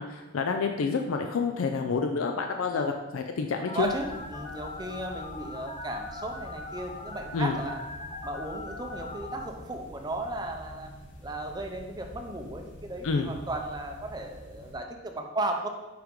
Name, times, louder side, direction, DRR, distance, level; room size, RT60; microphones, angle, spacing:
voice 1, 0.0-3.9 7.3-7.6 13.0-13.3, left 4 dB, 75° left, 5 dB, 0.4 m, -28 dB
Telephone, 3.7-9.4, left 3 dB, 20° left, 0.7 m, -41 dB
voice 2, 3.7-7.8 8.2-10.9 11.2-15.7, right 1 dB, 20° right, 3 dB, 0.5 m, -35 dB
sound 1, 3.8-14.7, equal, 55° left, 1.3 m, -47 dB
5.8 x 5.2 x 3.7 m, 1.1 s
head